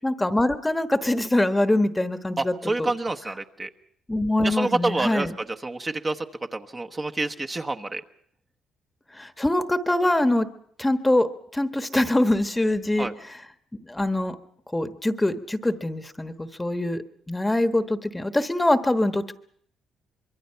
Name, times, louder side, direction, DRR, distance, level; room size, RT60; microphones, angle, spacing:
voice 1, 0.0-2.9 4.1-5.3 9.1-10.5 10.8-11.3 11.5-13.1 13.9-14.4 14.7-17.0 17.3-19.3, left 1 dB, 10° left, 9 dB, 1.2 m, -23 dB
voice 2, 2.4-3.7 4.4-5.3 5.6-6.3 6.5-8.0 13.0-13.1, right 2 dB, 25° right, 5 dB, 1.1 m, -27 dB
25.0 x 22.5 x 5.7 m, 0.64 s
cardioid pair, 90°, 0 cm